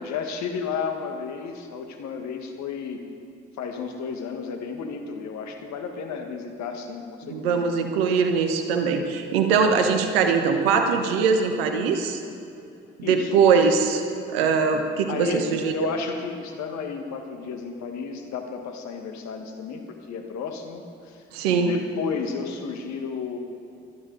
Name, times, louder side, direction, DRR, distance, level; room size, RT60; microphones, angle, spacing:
voice 1, 0.0-3.0 3.6-7.7 13.0-13.3 15.1-21.2 21.5-23.4, left 5 dB, 70° left, 5 dB, 1.6 m, -33 dB
voice 2, 7.3-12.2 13.0-14.0 14.3-15.7 21.3-21.7, right 5 dB, 90° right, 6 dB, 1.1 m, -21 dB
17.5 x 12.5 x 4.0 m, 2.6 s
hypercardioid pair, 45°, 29 cm